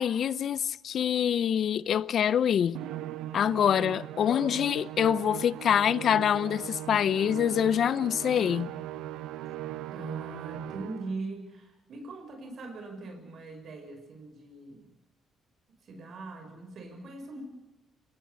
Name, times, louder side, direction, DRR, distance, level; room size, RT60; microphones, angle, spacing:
voice 1, 0.0-2.8 3.3-8.7, left 9 dB, 65° left, 0.8 m, -25 dB
Musical instrument, 2.7-11.2, right 13 dB, 90° right, 0.8 m, -39 dB
voice 2, 9.9-14.9 15.8-17.4, right 3 dB, 60° right, 5.9 m, -41 dB
25.0 x 19.0 x 8.4 m
cardioid pair, 90°, 0 cm